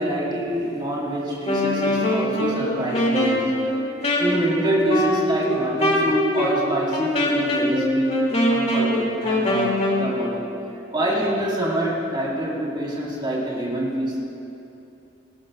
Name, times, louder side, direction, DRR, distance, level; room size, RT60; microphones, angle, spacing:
voice 1, 0.0-3.5 4.0-10.4 10.9-14.4, right 1 dB, 25° right, -5 dB, 3.5 m, -26 dB
Wind instrument woodwind instrument, 1.3-10.1, left 1 dB, 35° left, 2.2 m, -23 dB
19.0 x 18.5 x 2.3 m, 2.8 s
head